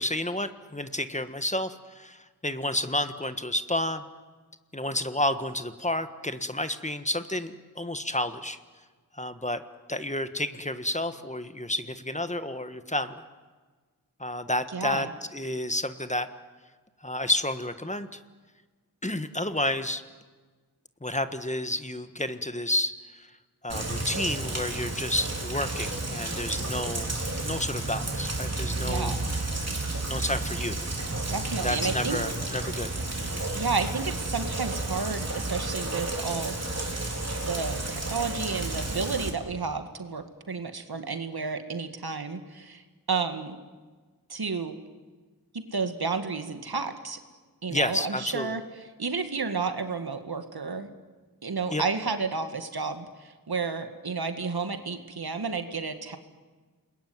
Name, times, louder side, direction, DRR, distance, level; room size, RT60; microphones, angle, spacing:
voice 1, 0.0-4.0 4.7-8.6 9.1-9.6 9.9-13.2 14.2-16.3 17.0-18.2 19.0-20.0 21.0-23.3 23.6-27.1 27.4-29.1 30.0-30.8 31.5-32.9 33.2-33.4 47.7-48.6 51.7-51.8, left 1 dB, 20° left, 10 dB, 1.5 m, -30 dB
voice 2, 14.7-15.1 28.7-29.3 31.3-32.2 33.5-36.5 37.5-42.8 43.1-43.6 44.3-44.7 45.5-47.2 47.6-48.6 49.0-50.9 51.4-56.2, right 4 dB, 80° right, 8 dB, 2.0 m, -31 dB
Rain, 23.7-39.3, right 2 dB, 45° right, 4.1 m, -31 dB
29.0 x 21.0 x 9.5 m, 1.4 s
wide cardioid pair, 45°, 37 cm